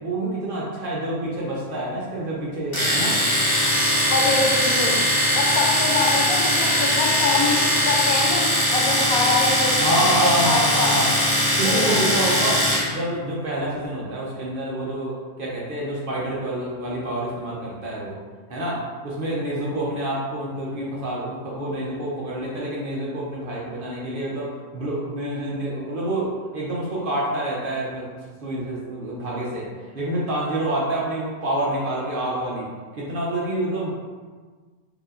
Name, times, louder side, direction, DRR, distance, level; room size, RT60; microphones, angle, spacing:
voice 1, 0.0-3.2 9.8-11.2 11.6-18.2 18.5-28.1 28.4-29.7 29.9-32.7 32.9-33.9, right 1 dB, 55° right, -5 dB, 0.6 m, -27 dB
Domestic sounds home sounds, 2.7-12.9, equal, 25° left, 0.9 m, -21 dB
voice 2, 4.1-5.0 5.3-8.4 8.7-10.9 11.6-12.1, left 3 dB, 80° left, -1 dB, 1.1 m, -25 dB
4.3 x 2.8 x 2.5 m, 1.5 s
omnidirectional pair, 1.5 m